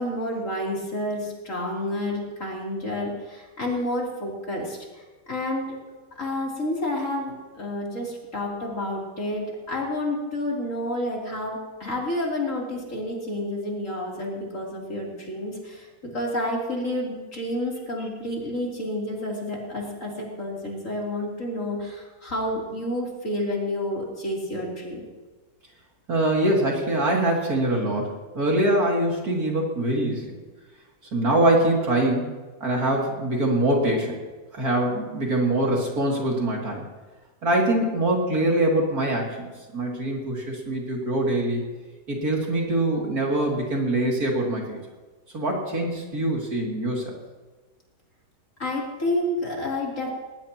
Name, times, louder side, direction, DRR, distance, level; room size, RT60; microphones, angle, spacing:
voice 1, 0.0-5.7 6.2-15.9 16.1-25.0 48.6-50.1, left 1 dB, 45° left, -3 dB, 3.8 m, -29 dB
voice 2, 26.1-30.4 31.1-34.2 34.5-36.8 37.4-41.6 42.1-44.8 45.3-47.1, right 1 dB, 55° right, -2 dB, 3.3 m, -24 dB
20.0 x 18.5 x 3.0 m, 1.3 s
omnidirectional pair, 1.9 m